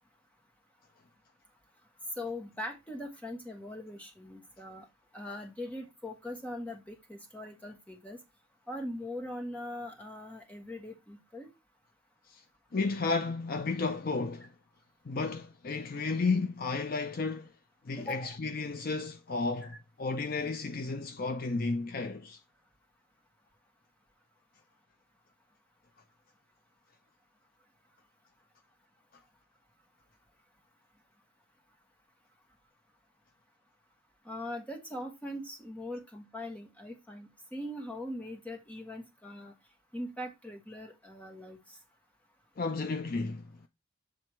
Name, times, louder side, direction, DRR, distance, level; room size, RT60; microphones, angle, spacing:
voice 1, 2.2-4.9 5.1-8.2 8.7-11.5 18.0-18.4 19.6-19.8 34.2-39.5 39.9-41.6, left 1 dB, 5° left, 1.4 m, -41 dB
voice 2, 12.7-14.5 15.1-17.5 17.9-22.4 42.6-43.5, left 3 dB, 45° left, 0.5 m, -32 dB
7.6 x 3.5 x 4.4 m
head